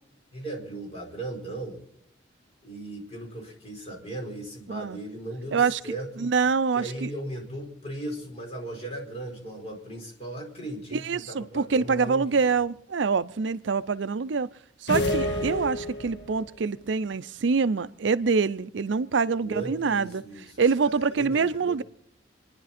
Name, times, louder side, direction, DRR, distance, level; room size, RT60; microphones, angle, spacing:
voice 1, 0.3-1.8 2.6-6.3 6.7-12.5 19.4-21.8, right 1 dB, 35° left, 4.7 m, -37 dB
voice 2, 4.7-5.0 5.5-5.8 6.2-7.1 10.9-14.5 14.8-20.2 20.6-21.8, right 5 dB, 75° right, 0.5 m, -25 dB
sound 1, 14.9-16.4, left 1 dB, 65° left, 2.0 m, -28 dB
27.5 x 10.5 x 4.2 m
head